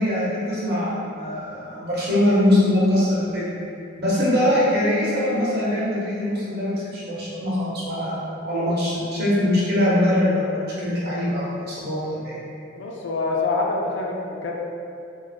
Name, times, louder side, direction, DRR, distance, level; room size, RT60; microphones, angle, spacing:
voice 1, 0.0-3.5 4.0-10.5 10.8-12.4, left 1 dB, 50° right, -8 dB, 0.8 m, -22 dB
voice 2, 12.7-14.5, left 3 dB, 60° left, -1 dB, 0.3 m, -25 dB
2.5 x 2.0 x 3.3 m, 2.6 s
head